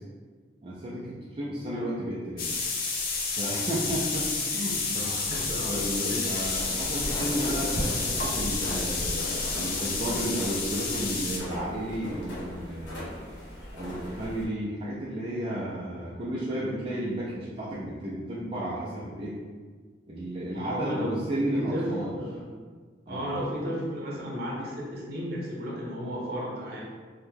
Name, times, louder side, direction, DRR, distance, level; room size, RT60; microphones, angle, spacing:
voice 1, 0.6-2.5 3.4-5.1 5.7-13.1 13.7-19.4 20.1-22.1 23.1-23.4, right 1 dB, 30° right, -8 dB, 0.4 m, -33 dB
sound 1, 2.4-11.4, left 4 dB, 50° left, 0.4 m, -30 dB
voice 2, 4.9-6.4 6.6-6.8 20.5-21.1 21.5-22.5 23.1-26.8, equal, 60° right, -4 dB, 0.8 m, -34 dB
sound 2, 6.4-14.5, equal, 85° left, 0.9 m, -37 dB
2.7 x 2.1 x 3.3 m, 1.5 s
head